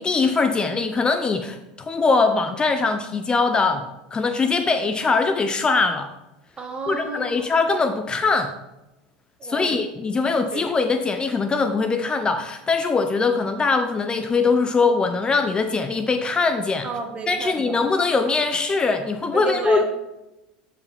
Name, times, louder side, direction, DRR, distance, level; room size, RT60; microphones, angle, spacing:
voice 1, 0.0-1.6 1.9-6.1 6.9-8.5 9.4-16.9 17.3-19.8, left 4 dB, 20° left, 7 dB, 0.6 m, -22 dB
voice 2, 6.6-7.5 9.4-9.7 10.5-10.6 16.8-17.8 19.3-19.8, right 4 dB, 30° right, 3 dB, 1.6 m, -31 dB
11.0 x 4.9 x 3.5 m, 0.96 s
hypercardioid pair, 100°, 4 cm